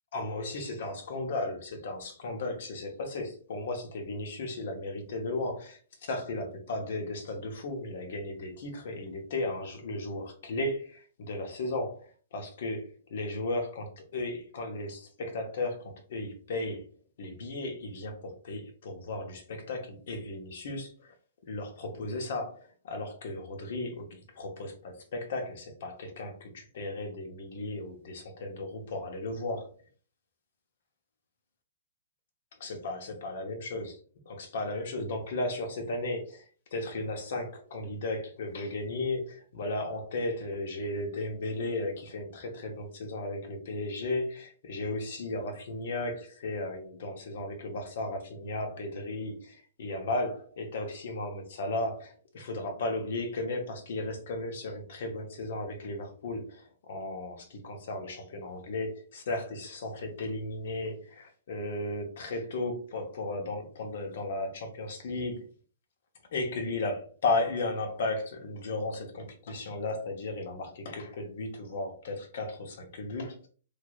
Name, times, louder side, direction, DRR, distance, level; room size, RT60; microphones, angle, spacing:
voice 1, 0.1-16.8 17.2-21.1 21.5-29.7 32.6-33.9 34.3-36.4 36.7-65.5 66.3-73.5, left 2 dB, 65° left, 0.9 m, -35 dB
3.3 x 2.8 x 2.4 m
hypercardioid pair, 125°, 0 cm